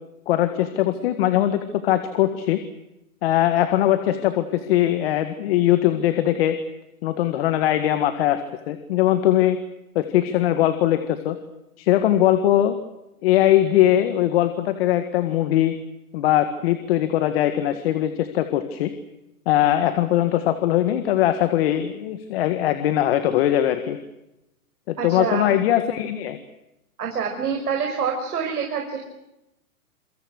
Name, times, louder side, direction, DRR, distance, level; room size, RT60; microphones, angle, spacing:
voice 1, 0.3-2.6 3.2-6.6 7.0-8.4 8.7-9.6 10.0-11.4 11.8-12.7 13.2-15.7 16.1-18.9 19.5-24.0 24.9-26.4, left 12 dB, 40° left, 9 dB, 1.8 m, -21 dB
voice 2, 25.0-25.5 27.0-29.0, right 6 dB, 85° right, 2 dB, 5.7 m, -26 dB
28.0 x 24.5 x 6.5 m, 0.90 s
hypercardioid pair, 160°, 45 cm